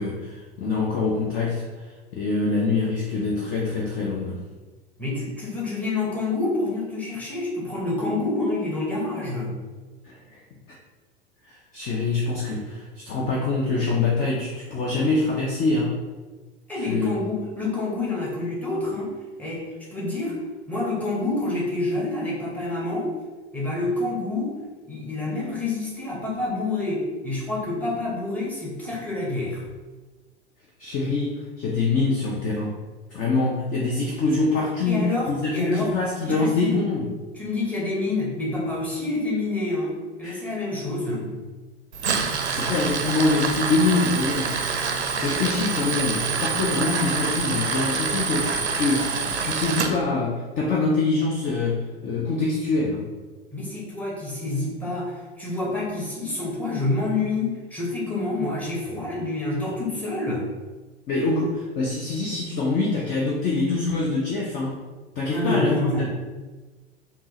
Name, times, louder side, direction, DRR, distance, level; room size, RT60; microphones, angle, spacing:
voice 1, 0.0-4.4 10.0-10.4 11.4-16.0 16.7-17.1 30.8-32.8 33.1-37.1 40.2-40.5 42.2-44.6 45.2-53.1 61.1-64.8 65.2-66.1, left 3 dB, 25° left, -2 dB, 0.5 m, -25 dB
voice 2, 5.0-9.5 16.7-19.1 19.4-20.4 20.7-23.1 23.5-24.5 24.8-29.6 34.8-35.9 36.2-36.7 37.4-41.5 53.5-60.5 65.3-66.1, left 2 dB, 5° left, -5 dB, 1.0 m, -27 dB
Tools, 41.9-49.9, right 5 dB, 80° right, 0.5 m, -26 dB
3.5 x 2.7 x 2.9 m, 1.3 s
figure-of-eight pair, 85°, 33 cm